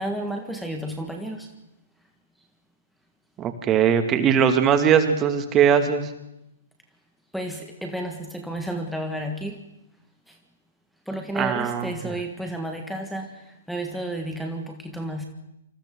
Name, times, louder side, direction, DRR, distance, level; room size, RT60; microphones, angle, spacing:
voice 1, 0.0-1.5 7.3-9.6 10.3-10.4 11.1-15.2, right 1 dB, ahead, 4 dB, 1.8 m, -32 dB
voice 2, 3.4-6.1 11.3-12.1, right 8 dB, 20° right, 7 dB, 2.4 m, -20 dB
28.0 x 26.5 x 4.0 m, 0.86 s
figure-of-eight pair, 120°, 0 cm